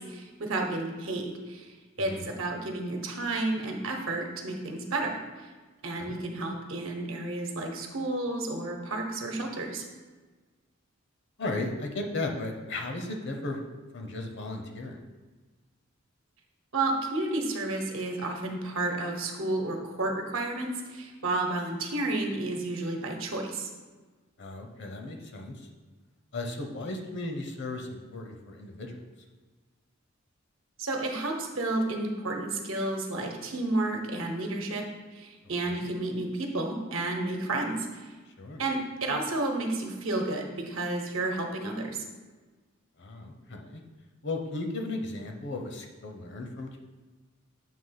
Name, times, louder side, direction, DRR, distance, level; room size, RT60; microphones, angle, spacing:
voice 1, 0.0-1.7 2.0-5.2 5.8-9.8 16.7-23.7 30.8-34.9 35.1-38.1 38.6-42.0, right 2 dB, 70° right, 2 dB, 1.0 m, -31 dB
voice 2, 2.0-2.3 6.0-6.2 11.4-13.6 13.9-15.0 24.4-25.7 26.3-29.0 35.6-35.8 38.4-38.6 43.0-43.8 44.2-46.8, left 2 dB, 60° left, 4 dB, 0.8 m, -35 dB
7.3 x 3.0 x 5.7 m, 1.3 s
head